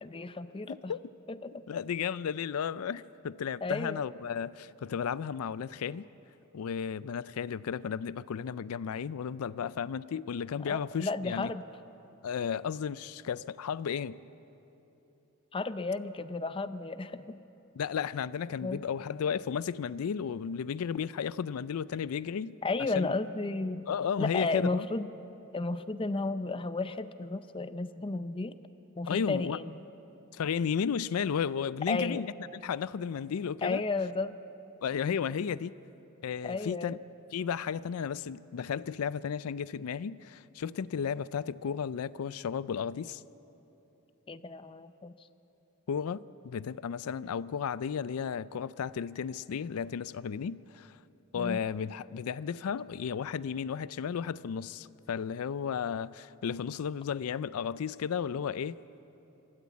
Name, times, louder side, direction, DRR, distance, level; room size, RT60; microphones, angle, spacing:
voice 1, 0.0-0.9 1.3-1.6 3.6-4.0 10.7-11.6 15.5-17.4 18.6-18.8 22.6-23.9 24.2-25.1 25.5-28.6 29.0-29.8 31.9-32.2 33.6-34.4 36.4-37.0 44.3-45.3 51.3-51.6, left 3 dB, 25° left, 12 dB, 0.5 m, -33 dB
voice 2, 0.7-1.0 1.7-6.1 6.5-11.5 12.2-14.2 17.8-22.6 22.9-23.2 23.9-24.9 29.1-29.6 30.3-33.8 34.8-35.7 36.2-37.0 37.3-43.2 45.9-50.9 51.3-58.8, left 7 dB, 85° left, 18 dB, 0.4 m, -34 dB
26.0 x 13.5 x 8.3 m, 3.0 s
head